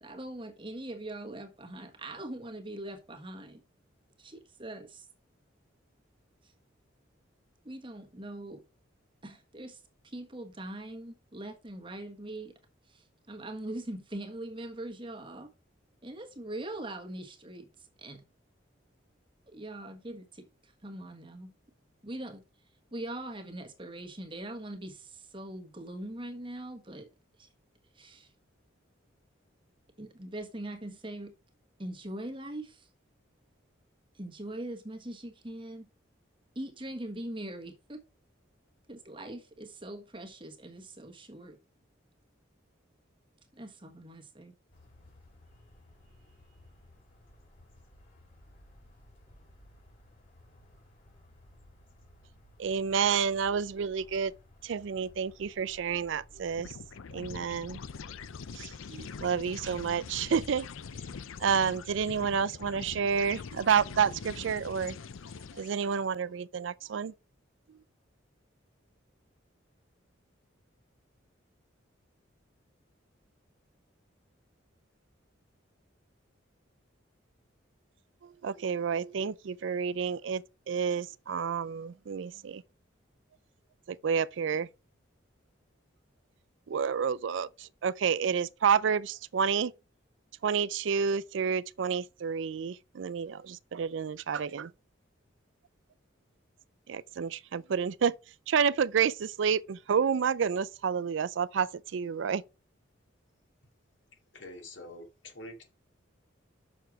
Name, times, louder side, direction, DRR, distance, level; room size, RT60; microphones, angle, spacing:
voice 1, 0.0-3.6 4.2-5.1 6.4-6.5 7.6-8.6 9.2-12.5 12.9-15.5 16.0-18.2 19.5-21.5 22.0-22.4 22.9-27.1 27.4-27.5 27.9-28.3 30.0-31.3 31.8-32.9 34.1-35.9 36.5-38.0 38.9-41.6 43.5-44.5, right 1 dB, 25° right, 1.4 m, -42 dB
sound 1, 44.7-60.4, left 1 dB, 45° left, 3.1 m, -58 dB
voice 2, 52.6-54.3 54.6-56.7 57.1-57.8 58.6-60.7 61.4-65.0 65.6-67.1 78.4-82.6 83.9-84.7 86.7-89.7 90.4-94.7 96.9-98.1 98.5-102.4, right 6 dB, 70° right, 0.4 m, -29 dB
sound 2, 56.5-66.0, left 5 dB, 90° left, 0.5 m, -43 dB
voice 3, 104.3-105.6, left 1 dB, 65° left, 2.5 m, -46 dB
6.7 x 6.3 x 4.6 m
head